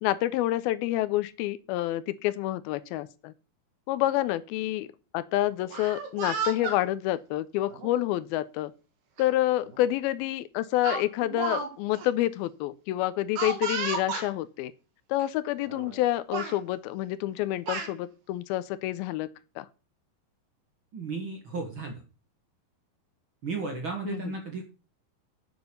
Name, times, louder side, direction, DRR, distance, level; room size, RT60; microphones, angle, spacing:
voice 1, 0.0-3.3 3.9-4.9 5.1-8.7 9.2-14.7 15.1-19.3 19.6-19.7 24.1-24.3, left 14 dB, 85° left, 2.4 m, -28 dB
Speech, 5.6-6.8 7.7-7.9 9.2-9.3 9.7-9.9 10.8-11.7 11.9-12.1 13.4-14.3 15.2-15.3 15.7-16.0 16.3-16.6 17.3-17.9, right 5 dB, 90° right, 3.8 m, -33 dB
voice 2, 20.9-22.0 23.4-24.6, right 4 dB, 45° right, 1.7 m, -34 dB
8.0 x 7.0 x 6.7 m
omnidirectional pair, 4.4 m